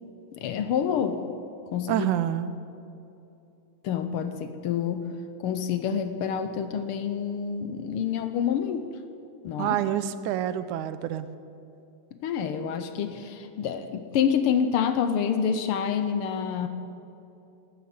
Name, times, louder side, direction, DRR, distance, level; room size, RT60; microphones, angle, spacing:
voice 1, 0.3-1.2 1.7-2.1 3.8-5.1 5.4-8.9 9.4-9.8 12.1-16.7, left 7 dB, 70° left, 8 dB, 1.3 m, -27 dB
voice 2, 1.9-2.5 9.6-11.3, right 11 dB, 90° right, 13 dB, 2.1 m, -27 dB
13.0 x 10.5 x 9.5 m, 2.8 s
omnidirectional pair, 3.4 m